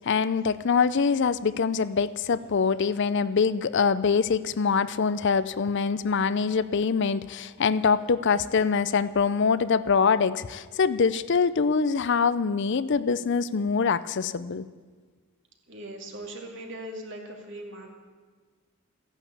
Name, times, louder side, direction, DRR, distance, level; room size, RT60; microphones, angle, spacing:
voice 1, 0.0-14.7, left 5 dB, 55° left, 15 dB, 0.5 m, -24 dB
voice 2, 15.7-17.9, right 1 dB, 55° right, 2 dB, 2.6 m, -39 dB
15.0 x 11.0 x 8.4 m, 1.5 s
head